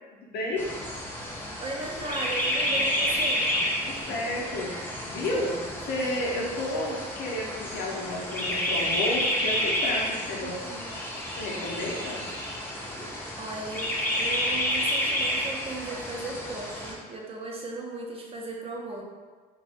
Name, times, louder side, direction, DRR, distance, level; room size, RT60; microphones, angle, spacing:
voice 1, 0.2-0.8 3.8-10.6 11.4-12.3, left 1 dB, 70° left, -2 dB, 0.6 m, -32 dB
sound 1, 0.6-16.9, left 1 dB, 10° left, 0.5 m, -30 dB
voice 2, 1.6-3.5 10.4-11.0 13.1-19.0, right 2 dB, 35° right, -1 dB, 0.5 m, -37 dB
2.4 x 2.1 x 3.4 m, 1.4 s
cardioid pair, 110°, 17 cm